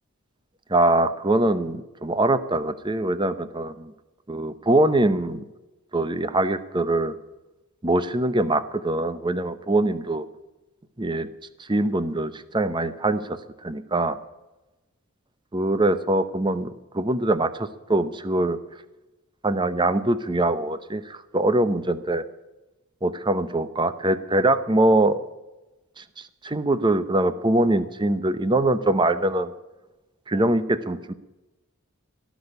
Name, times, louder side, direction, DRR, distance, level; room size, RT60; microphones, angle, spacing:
voice 1, 0.7-3.9 4.3-5.4 5.9-7.1 7.8-10.2 11.0-11.3 11.7-14.2 15.5-18.6 19.4-22.2 23.0-25.2 26.0-26.1 26.4-29.5 30.3-31.1, right 2 dB, 20° right, 13 dB, 0.7 m, -23 dB
17.5 x 6.3 x 10.0 m, 1.0 s
head